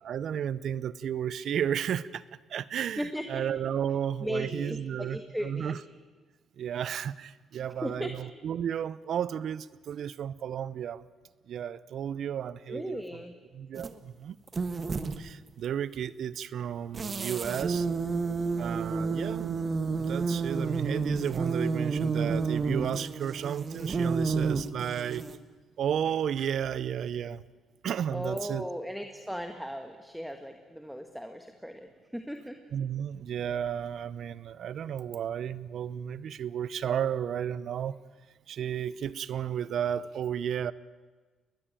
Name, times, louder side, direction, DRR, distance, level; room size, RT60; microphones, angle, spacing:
voice 1, 0.0-2.2 2.5-5.8 6.6-11.0 11.5-13.0 13.5-14.4 15.2-17.9 18.6-19.6 19.9-25.2 25.8-27.4 27.8-28.7 32.7-38.0 38.5-40.7, right 9 dB, 65° right, 19 dB, 0.7 m, -33 dB
voice 2, 3.0-3.4 4.2-5.8 7.8-8.1 12.7-13.3 28.1-32.6, equal, ahead, 6 dB, 1.7 m, -37 dB
sound 1, 13.8-13.9 14.5-15.2 16.9-25.4, right 4 dB, 35° right, 1.6 m, -30 dB
22.0 x 20.0 x 9.1 m, 1.3 s
cardioid pair, 90°, 0 cm